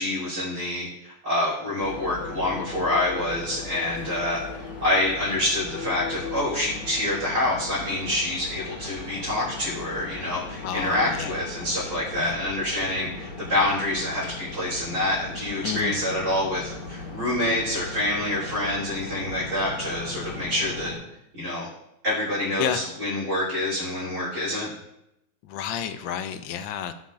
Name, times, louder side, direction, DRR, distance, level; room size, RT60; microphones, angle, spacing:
voice 1, 0.0-4.4 4.8-20.9 21.3-21.7 22.0-24.7, left 1 dB, 55° right, -11 dB, 4.1 m, -27 dB
sound 1, 1.8-20.9, left 3 dB, 55° left, 2.8 m, -38 dB
voice 2, 10.6-11.4 12.2-12.4 15.6-16.0 22.6-22.8 25.5-26.9, left 9 dB, 75° left, 10 dB, 1.2 m, -30 dB
17.0 x 6.2 x 2.6 m, 0.84 s
omnidirectional pair, 2.4 m